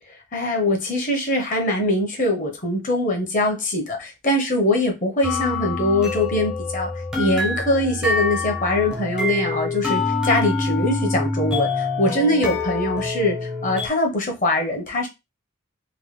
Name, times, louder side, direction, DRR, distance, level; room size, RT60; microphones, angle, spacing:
voice 1, 0.3-6.9 7.2-15.1, left 1 dB, 40° left, 0.8 m, -22 dB
sound 1, 5.2-13.9, left 3 dB, 5° right, 0.5 m, -25 dB
3.1 x 2.2 x 3.1 m
head